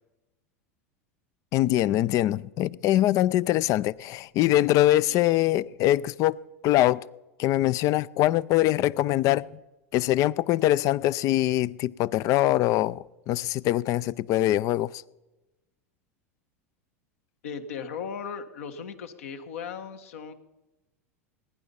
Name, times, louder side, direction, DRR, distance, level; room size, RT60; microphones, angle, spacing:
voice 1, 1.5-6.4 6.6-7.0 7.4-9.5 9.9-15.0, left 14 dB, 45° left, 0.5 m, -23 dB
voice 2, 17.4-20.3, left 6 dB, 70° left, 1.5 m, -37 dB
20.0 x 10.0 x 5.4 m
hypercardioid pair, 85°, 8 cm